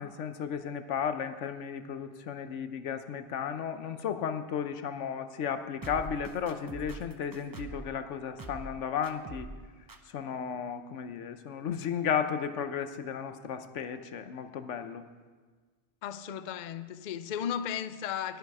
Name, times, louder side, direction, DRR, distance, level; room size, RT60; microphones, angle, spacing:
voice 1, 0.0-9.5 10.1-15.0, left 7 dB, 80° left, 1.1 m, -34 dB
sound 1, 5.8-7.9 8.4-8.8 9.0-9.6 9.9-10.0, right 3 dB, 25° right, 0.5 m, -43 dB
voice 2, 16.0-18.4, left 9 dB, 55° left, 0.5 m, -35 dB
20.0 x 7.0 x 4.8 m
omnidirectional pair, 1.2 m